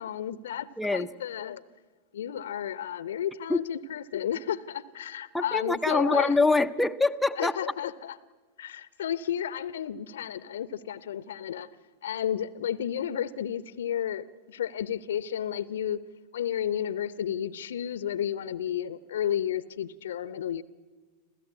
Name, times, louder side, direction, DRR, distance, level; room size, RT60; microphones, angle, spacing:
voice 1, 0.0-1.6 2.1-6.4 7.4-8.2 8.6-11.7 12.0-16.0 16.3-20.6, left 10 dB, 60° left, 19 dB, 0.7 m, -32 dB
voice 2, 0.8-1.1 3.5-3.6 5.3-7.5, left 3 dB, 5° left, 6 dB, 0.6 m, -24 dB
27.0 x 16.0 x 8.4 m, 1.4 s
figure-of-eight pair, 90°, 0 cm